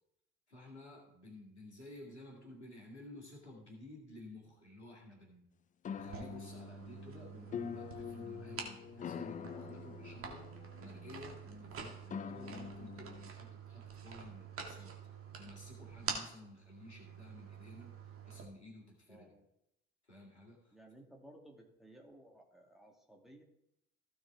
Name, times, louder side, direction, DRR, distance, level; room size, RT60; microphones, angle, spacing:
voice 1, 0.5-5.4 5.9-10.5 10.8-15.0 15.4-19.3 20.0-20.8, left 1 dB, 85° left, -2 dB, 2.1 m, -53 dB
sound 1, 5.9-13.3, left 8 dB, 25° left, 0.5 m, -46 dB
sound 2, 6.0-18.5, right 6 dB, 40° right, 2.1 m, -47 dB
voice 2, 19.1-19.5 20.7-23.4, right 1 dB, ahead, 0 dB, 2.4 m, -58 dB
15.5 x 6.4 x 3.4 m, 0.82 s
figure-of-eight pair, 50°, 33 cm